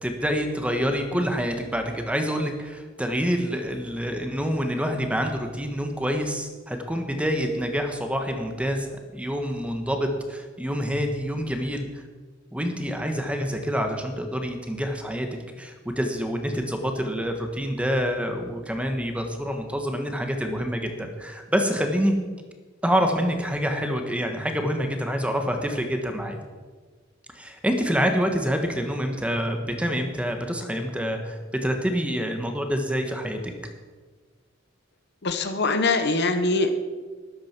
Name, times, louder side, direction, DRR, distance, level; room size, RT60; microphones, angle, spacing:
voice 1, 0.0-11.9 12.5-15.3 15.6-22.2 22.8-26.4 27.3-33.5, equal, 5° right, 5 dB, 1.4 m, -27 dB
voice 2, 35.2-36.7, left 3 dB, 55° left, 8 dB, 1.2 m, -23 dB
13.0 x 11.5 x 6.1 m, 1.4 s
head